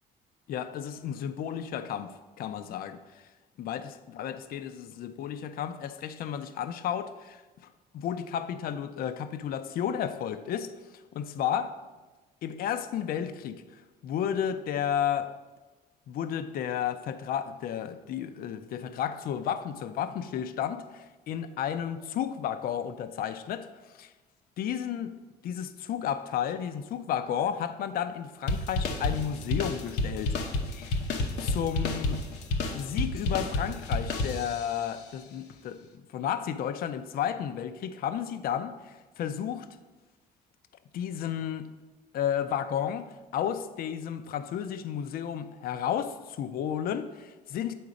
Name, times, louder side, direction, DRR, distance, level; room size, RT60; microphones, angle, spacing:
voice 1, 0.5-3.0 3.6-7.7 7.9-10.7 11.1-11.8 12.4-15.3 16.1-24.1 24.6-25.2 25.4-30.4 30.7-32.2 32.7-35.9 36.1-39.7 40.9-41.7 42.1-47.7, left 9 dB, 60° left, 0.5 m, -32 dB
sound 1, 28.5-34.8, left 2 dB, 80° left, 0.8 m, -30 dB
8.5 x 3.8 x 5.1 m
cardioid pair, 110°, 17 cm